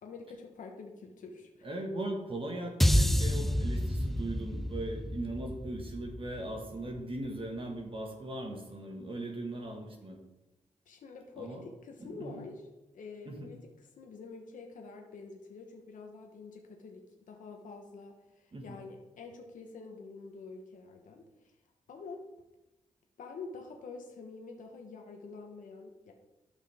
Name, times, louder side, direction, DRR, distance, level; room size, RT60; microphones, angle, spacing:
voice 1, 0.0-1.7 10.9-12.7 12.9-21.6 21.9-22.2 23.2-26.1, left 4 dB, 80° left, 2 dB, 1.2 m, -47 dB
voice 2, 1.6-10.2 11.4-11.6 12.0-12.5 13.3-13.5 18.5-18.7, right 1 dB, 40° right, 2 dB, 1.8 m, -39 dB
sound 1, 2.8-7.2, equal, ahead, 0.4 m, -29 dB
12.5 x 5.5 x 3.6 m, 0.99 s
cardioid pair, 70°, 13 cm